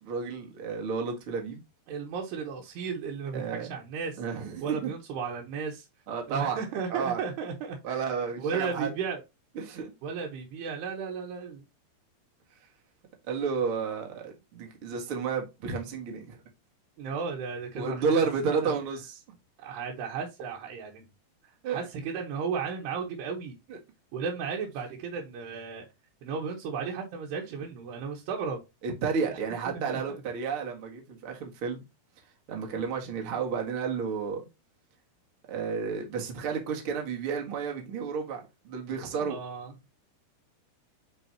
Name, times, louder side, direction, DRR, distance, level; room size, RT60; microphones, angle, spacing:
voice 1, 0.0-1.6 3.3-3.7 4.2-4.9 6.1-6.6 6.9-7.2 7.8-8.9 9.6-9.9 13.3-16.4 17.7-19.1 21.6-21.8 23.7-23.8 28.8-31.8 32.5-34.4 35.5-39.4, right 5 dB, 50° right, 1.8 m, -31 dB
voice 2, 1.9-4.2 4.6-5.9 6.3-8.1 8.4-9.2 10.0-11.6 15.6-15.8 17.0-18.3 18.6-18.7 19.6-21.0 21.7-23.6 24.1-25.8 26.2-28.6 29.3-29.4 29.7-30.2 39.2-39.7, right 5 dB, 75° right, 3.2 m, -34 dB
8.4 x 4.9 x 2.9 m
omnidirectional pair, 5.0 m